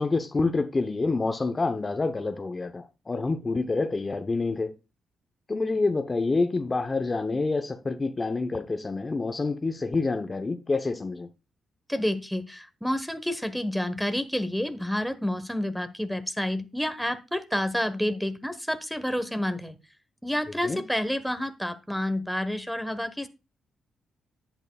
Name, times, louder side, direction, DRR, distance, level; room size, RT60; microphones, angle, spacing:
voice 1, 0.0-4.7 5.5-11.3 20.6-20.8, left 3 dB, 30° left, 0.8 m, -27 dB
voice 2, 11.9-19.8 20.2-23.3, left 1 dB, ahead, 1.2 m, -29 dB
10.5 x 8.0 x 2.3 m
supercardioid pair, 55°, 0 cm